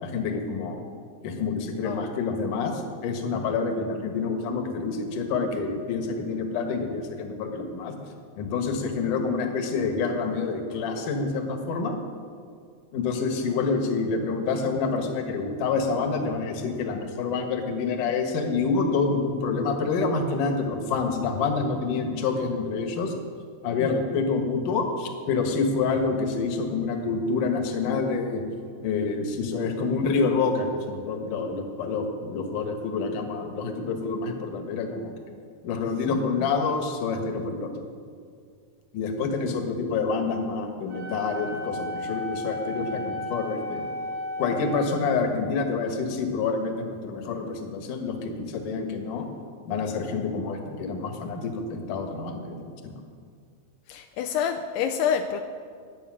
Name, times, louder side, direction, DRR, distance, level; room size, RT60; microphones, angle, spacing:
voice 1, 0.0-0.8 1.2-7.9 8.4-12.0 12.9-23.1 23.6-28.4 28.8-35.1 35.6-37.9 38.9-43.9 44.4-49.3 49.6-52.9, left 4 dB, 60° left, 4 dB, 2.7 m, -27 dB
Wind instrument woodwind instrument, 40.9-45.1, left 1 dB, 75° right, 7.4 m, -34 dB
voice 2, 53.9-55.4, left 8 dB, 85° left, 6 dB, 2.7 m, -27 dB
21.5 x 8.6 x 6.3 m, 2.1 s
omnidirectional pair, 4.8 m